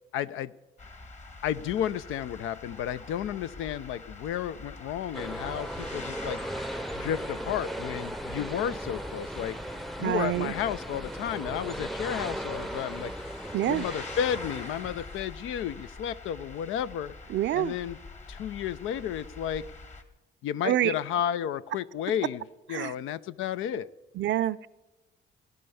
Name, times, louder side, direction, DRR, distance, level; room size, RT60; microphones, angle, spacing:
voice 1, 0.1-0.5 1.4-6.4 6.9-9.6 10.0-13.1 13.7-17.1 17.5-18.0 18.3-19.6 20.4-23.9, left 10 dB, 85° left, 16 dB, 0.6 m, -32 dB
sound 1, 0.8-20.0, left 3 dB, 35° left, 1.7 m, -45 dB
sound 2, 5.1-15.2, right 1 dB, ahead, 0.6 m, -37 dB
Wind instrument woodwind instrument, 8.9-11.9, left 2 dB, 55° left, 3.5 m, -60 dB
voice 2, 10.0-10.5 13.5-13.8 17.3-17.7 20.6-20.9 22.7-22.9 24.2-24.7, right 13 dB, 65° right, 19 dB, 0.5 m, -26 dB
18.0 x 11.0 x 7.0 m, 1.1 s
cardioid pair, 90°, 20 cm